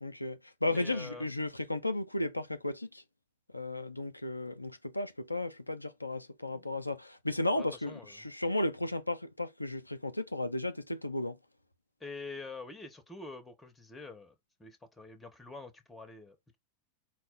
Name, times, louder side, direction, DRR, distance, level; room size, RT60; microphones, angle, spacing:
voice 1, 0.0-3.0 3.5-11.4, left 2 dB, 85° left, 0.4 m, -34 dB
voice 2, 0.7-1.3 6.5-6.7 7.5-8.3 12.0-14.3 14.6-16.6, left 3 dB, 10° left, 1.0 m, -46 dB
4.6 x 2.1 x 3.8 m
figure-of-eight pair, 90°, 0 cm